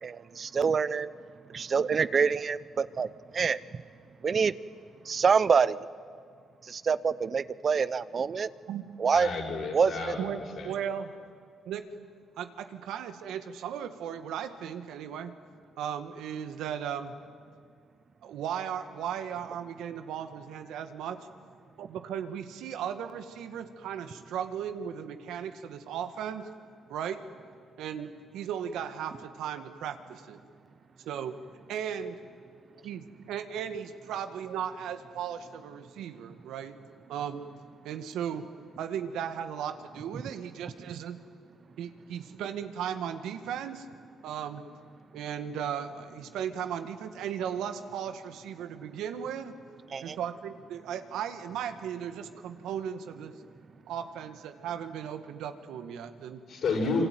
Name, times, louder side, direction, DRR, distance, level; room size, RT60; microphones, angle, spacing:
voice 1, 0.0-1.1 1.5-3.8 4.2-4.5 5.1-5.8 6.6-8.5 9.0-9.3 9.7-9.9 49.9-50.2, right 6 dB, 45° right, 16 dB, 0.7 m, -26 dB
voice 2, 9.1-10.8 56.5-57.1, left 3 dB, 60° left, 1 dB, 6.7 m, -31 dB
voice 3, 10.2-11.1 11.7-11.8 12.4-15.3 15.8-17.1 18.2-21.3 21.8-26.5 26.9-27.2 27.8-30.4 31.0-31.3 31.7-32.2 32.8-36.8 37.1-37.4 37.8-38.5 38.8-41.2 41.8-43.9 44.2-44.6 45.1-49.5 50.0-53.3 53.9-56.4, right 8 dB, 85° right, 8 dB, 1.8 m, -36 dB
25.5 x 24.5 x 9.4 m, 2.2 s
cardioid pair, 90°, 0 cm